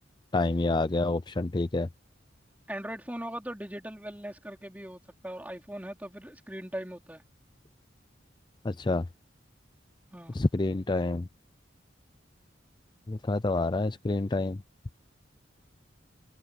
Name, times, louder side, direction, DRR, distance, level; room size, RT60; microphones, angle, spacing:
voice 1, 0.3-1.9 8.6-9.0 10.3-11.3 13.1-14.6, left 2 dB, 25° left, 0.5 m, -28 dB
voice 2, 2.7-7.2 10.1-10.4, right 1 dB, 10° right, 4.1 m, -39 dB
head